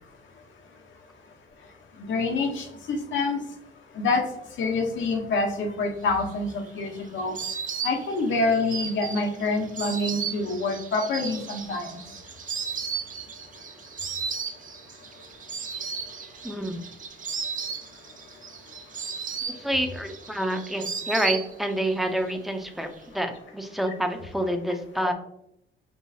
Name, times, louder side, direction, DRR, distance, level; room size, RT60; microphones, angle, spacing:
voice 1, 2.1-3.4 4.0-4.2 4.6-6.5 6.8-7.3 7.8-12.0, left 3 dB, 70° left, 3 dB, 1.0 m, -26 dB
Insect, 6.2-21.9 22.2-23.0, right 6 dB, 40° right, 0.5 m, -35 dB
voice 2, 16.4-16.8 19.5-22.9 23.1-25.1, right 1 dB, ahead, 5 dB, 0.6 m, -28 dB
4.7 x 3.1 x 2.7 m, 0.75 s
cardioid pair, 90°, 20 cm